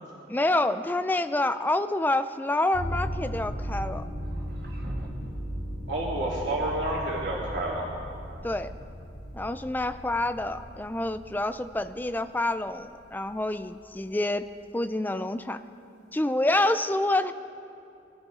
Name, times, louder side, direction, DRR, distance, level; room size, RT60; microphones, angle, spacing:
voice 1, 0.3-4.0 8.4-8.7 9.3-14.5 14.7-15.6 16.1-17.3, left 2 dB, 10° left, 11 dB, 0.4 m, -27 dB
sound 1, 2.0-2.8 4.2-5.5, equal, 60° right, 1.6 m, -44 dB
sound 2, 2.7-13.5, equal, 70° left, 3.0 m, -37 dB
voice 2, 5.9-7.9, right 1 dB, 85° right, -6 dB, 3.5 m, -29 dB
23.5 x 14.0 x 3.8 m, 2.7 s
head